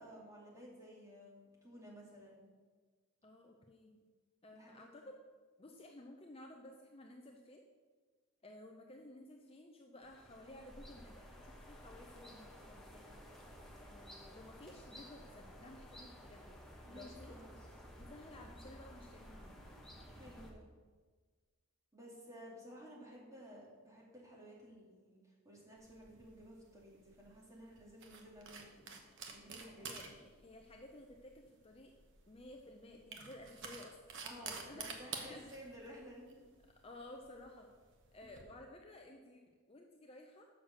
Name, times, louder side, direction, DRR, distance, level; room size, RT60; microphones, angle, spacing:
voice 1, 0.0-2.5 4.5-4.8 16.8-17.5 20.1-20.6 21.9-30.2 34.2-36.4, equal, 15° right, -5 dB, 2.4 m, -54 dB
voice 2, 3.2-4.0 4.4-5.2 5.6-7.6 8.4-13.2 13.8-16.6 16.9-17.4 18.0-19.6 29.8-31.9 32.3-34.8 35.2-35.5 36.8-37.7 38.1-39.4 39.7-40.5, left 1 dB, 25° left, 2 dB, 0.6 m, -55 dB
sound 1, 10.0-20.5, equal, ahead, 1.1 m, -54 dB
sound 2, 25.8-38.4, right 5 dB, 55° right, 1.0 m, -51 dB
6.5 x 6.5 x 6.5 m, 1.4 s
head